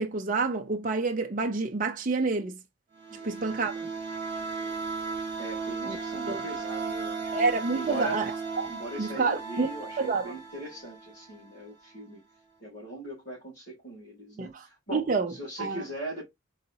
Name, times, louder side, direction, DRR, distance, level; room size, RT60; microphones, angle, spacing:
voice 1, 0.0-2.6 3.2-3.9 5.9-6.0 6.3-6.4 7.3-8.7 9.0-9.7 10.0-10.3 14.4-14.5 14.9-15.3 15.6-15.8, right 4 dB, 40° right, 0.5 m, -28 dB
sound 1, 2.9-11.5, right 4 dB, 20° right, 2.4 m, -36 dB
voice 2, 4.4-4.9 5.2-7.4 7.7-8.3 8.7-12.2 12.6-16.3, right 1 dB, 50° left, 2.5 m, -40 dB
4.1 x 3.9 x 2.7 m
head